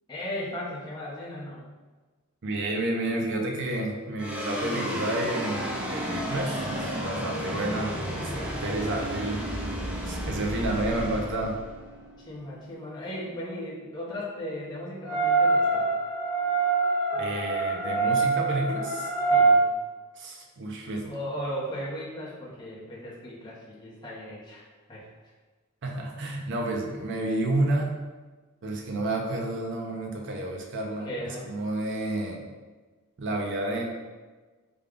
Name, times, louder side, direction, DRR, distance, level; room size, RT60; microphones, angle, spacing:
voice 1, 0.1-1.7 12.2-15.9 19.3-19.7 21.0-25.0 30.9-31.4, equal, 20° left, -8 dB, 0.8 m, -37 dB
voice 2, 2.4-9.6 10.0-11.6 17.1-19.1 20.2-21.1 25.8-28.0 28.6-32.4 33.2-33.8, right 1 dB, 55° right, 1 dB, 0.6 m, -30 dB
sound 1, 4.2-12.7, equal, 5° right, 0.4 m, -33 dB
sound 2, 15.0-19.5, right 4 dB, 80° left, 0.7 m, -24 dB
3.4 x 2.3 x 3.6 m, 1.3 s
head